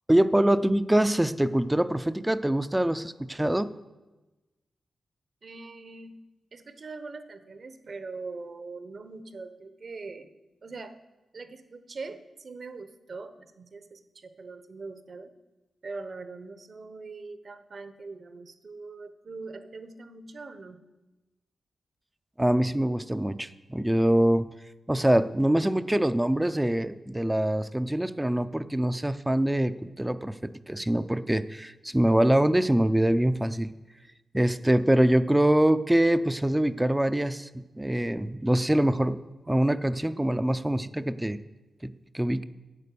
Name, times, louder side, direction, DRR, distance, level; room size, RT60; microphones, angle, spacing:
voice 1, 0.1-3.7 22.4-24.5 24.9-30.4 30.7-33.7 34.3-37.5 37.8-39.2 39.5-41.4 41.8-42.4, right 1 dB, 10° right, 13 dB, 0.5 m, -24 dB
voice 2, 5.4-6.2 6.5-10.3 10.6-11.0 11.3-15.3 15.8-20.8, right 3 dB, 55° right, 10 dB, 0.9 m, -42 dB
11.0 x 8.4 x 6.8 m, 1.1 s
cardioid pair, 85°, 0 cm